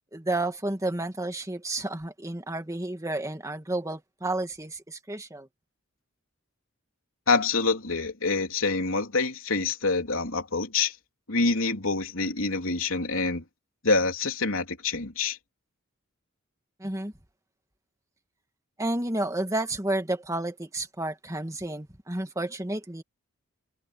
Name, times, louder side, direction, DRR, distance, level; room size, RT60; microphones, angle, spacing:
voice 1, 0.1-5.5 16.8-17.1 18.8-23.0, right 2 dB, 15° right, 2.0 m, -31 dB
voice 2, 7.3-11.0 11.3-13.4 13.8-15.4, left 3 dB, 70° left, 3.7 m, -26 dB
head